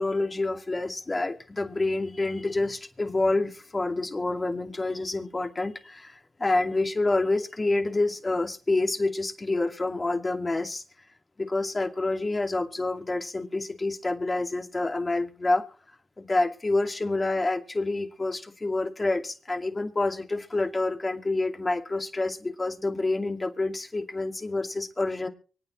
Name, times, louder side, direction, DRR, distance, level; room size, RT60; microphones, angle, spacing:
voice 1, 0.0-10.8 11.4-15.6 16.2-25.3, left 2 dB, 35° left, 4 dB, 2.5 m, -28 dB
24.5 x 9.4 x 3.3 m, 0.39 s
supercardioid pair, 40°, 0 cm